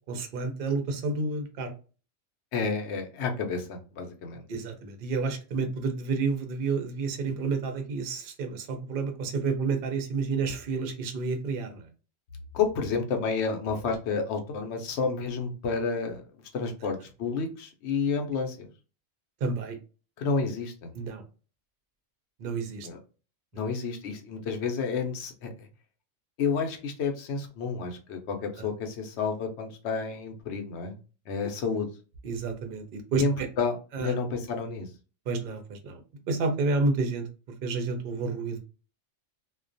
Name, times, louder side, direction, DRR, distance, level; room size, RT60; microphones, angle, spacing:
voice 1, 0.1-1.7 4.5-11.9 19.4-19.8 20.9-21.2 22.4-22.9 32.2-33.5 33.9-34.1 35.3-36.0 36.3-37.3 37.6-38.6, right 4 dB, 55° right, 5 dB, 0.6 m, -30 dB
voice 2, 2.5-4.4 12.5-16.2 16.5-18.7 20.2-20.9 22.8-23.0 23.5-25.7 26.4-31.0 31.3-31.9 33.1-34.9, left 5 dB, 65° left, 4 dB, 0.8 m, -30 dB
2.3 x 2.2 x 2.5 m, 0.34 s
omnidirectional pair, 1.3 m